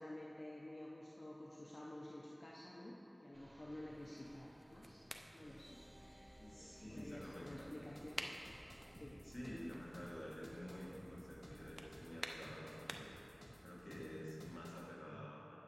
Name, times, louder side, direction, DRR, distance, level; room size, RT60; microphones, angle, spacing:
voice 1, 0.0-5.0 5.3-6.3 6.9-8.3 8.8-9.3, left 1 dB, 80° left, -4 dB, 0.7 m, -52 dB
sound 1, 3.3-11.8, equal, 55° right, 1.3 m, -62 dB
sound 2, 4.0-13.3, right 1 dB, 35° right, 0.6 m, -54 dB
voice 2, 6.4-7.8 9.2-13.2 13.6-15.6, equal, 60° left, -5 dB, 2.0 m, -51 dB
sound 3, 7.0-14.9, equal, 25° left, 1.7 m, -59 dB
8.7 x 7.2 x 4.8 m, 2.8 s
wide cardioid pair, 40°, 0 cm